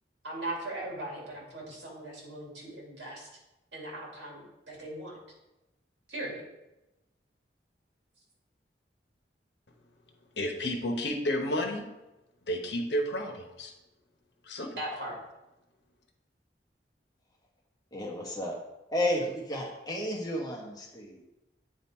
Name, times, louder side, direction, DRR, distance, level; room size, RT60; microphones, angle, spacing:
voice 1, 0.2-3.3 3.7-5.2 6.1-6.4 14.8-15.2, right 1 dB, 85° right, -3 dB, 2.4 m, -39 dB
voice 2, 10.4-11.9 12.5-13.7 14.4-14.7, equal, 75° left, 3 dB, 1.0 m, -31 dB
voice 3, 17.9-18.6 18.9-21.2, left 1 dB, 20° left, -1 dB, 1.0 m, -32 dB
8.4 x 3.9 x 4.3 m, 0.97 s
head